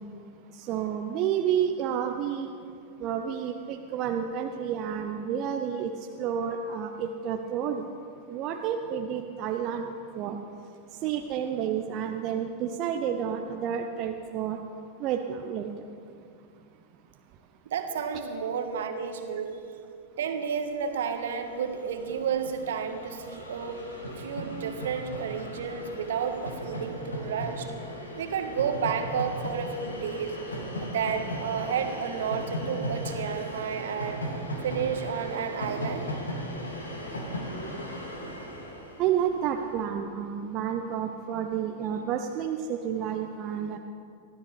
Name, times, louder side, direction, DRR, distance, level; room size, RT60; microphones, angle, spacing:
voice 1, 0.6-2.5 3.0-5.9 6.2-7.9 8.3-9.9 10.1-10.4 11.0-14.6 15.0-15.7 39.0-43.8, right 8 dB, 40° right, 4 dB, 0.8 m, -30 dB
voice 2, 17.7-19.6 20.2-23.8 24.2-27.7 28.2-30.4 30.8-34.2 34.6-36.1, right 7 dB, 60° right, 6 dB, 1.5 m, -31 dB
Train, 21.1-21.2 21.3-39.7, equal, 75° left, 2.5 m, -37 dB
24.0 x 15.5 x 3.4 m, 2.4 s
figure-of-eight pair, 90°, 0 cm